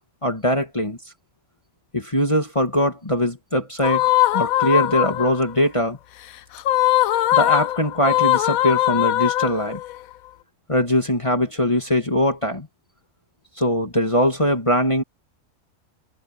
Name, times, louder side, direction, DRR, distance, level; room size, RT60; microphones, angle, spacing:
voice 1, 0.2-1.0 1.9-4.0 4.3-6.0 7.3-9.8 10.7-12.7 13.6-15.0, equal, 20° left, 2.3 m, -21 dB
sound 1, 3.8-5.5 6.6-10.0, left 15 dB, 85° left, 1.1 m, -20 dB
omnidirectional pair, 1.4 m